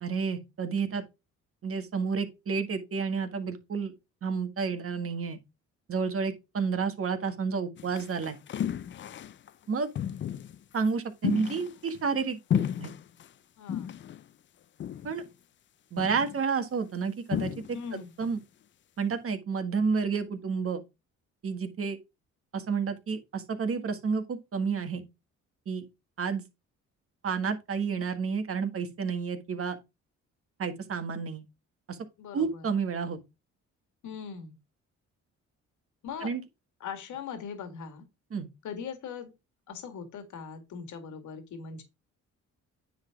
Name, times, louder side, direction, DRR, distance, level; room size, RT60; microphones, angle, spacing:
voice 1, 0.0-1.0 1.6-3.9 4.2-5.4 5.9-8.4 9.7-9.9 10.7-12.9 15.0-15.2 15.9-17.5 18.2-18.4 19.0-20.8 21.4-22.0 22.5-25.0 25.7-25.8 26.2-26.4 27.2-29.8 30.6-31.4 31.9-32.0 32.3-33.2 36.2-36.4 38.3-38.5, right 5 dB, 50° right, 1.7 m, -30 dB
sound 1, 7.8-9.5 10.0-10.6 11.2-12.2 12.5-13.3 13.7-14.2 14.8-15.3 16.0-16.4 17.3-17.9 18.2-18.4, left 9 dB, 40° left, 0.4 m, -33 dB
voice 2, 13.6-14.0 17.7-18.1 32.2-32.7 34.0-34.6 36.0-36.3 36.8-38.0 38.6-39.3 39.7-41.8, left 6 dB, 75° left, 2.0 m, -40 dB
9.5 x 3.9 x 4.6 m
cardioid pair, 90°, 30 cm